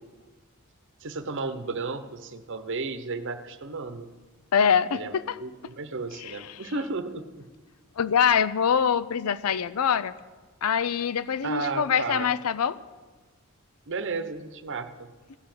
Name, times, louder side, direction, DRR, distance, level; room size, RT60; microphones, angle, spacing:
voice 1, 1.0-4.1 4.9-7.5 11.4-12.3 13.9-15.1, right 3 dB, 60° right, 10 dB, 0.9 m, -33 dB
voice 2, 4.5-5.4 6.2-6.4 8.0-10.1 10.6-12.8, left 7 dB, 80° left, 16 dB, 0.5 m, -24 dB
16.0 x 6.9 x 9.5 m, 1.3 s
head